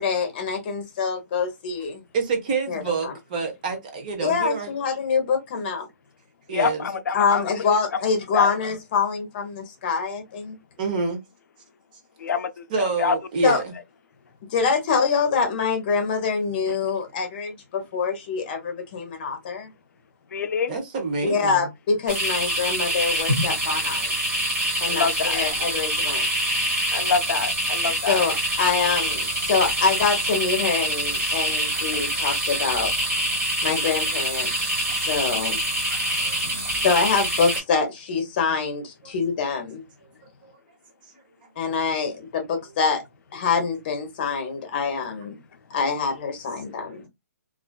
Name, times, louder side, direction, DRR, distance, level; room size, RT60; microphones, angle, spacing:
voice 1, 0.0-2.0 2.7-3.1 4.2-5.9 7.1-10.6 13.4-13.6 14.5-19.7 21.2-24.1 24.8-26.2 28.1-32.9 33.4-34.5 35.0-35.6 36.8-39.8 41.6-43.0 43.3-45.4 45.7-47.1, left 5 dB, 30° left, 0.8 m, -25 dB
voice 2, 2.1-4.7 6.5-6.9 10.8-11.2 12.7-13.7 20.7-21.6 34.9-35.0 36.2-36.4 36.7-36.8 39.0-39.2 40.0-40.1 40.4-40.5 46.7-46.8, right 4 dB, 30° right, 0.6 m, -28 dB
voice 3, 6.5-7.5 8.3-8.5 12.2-12.6 13.0-13.2 20.3-20.7 24.9-25.4 26.9-28.2, left 5 dB, 75° left, 0.4 m, -25 dB
sound 1, 22.1-37.6, right 1 dB, 15° right, 1.1 m, -25 dB
2.4 x 2.3 x 2.2 m
hypercardioid pair, 165°, 9 cm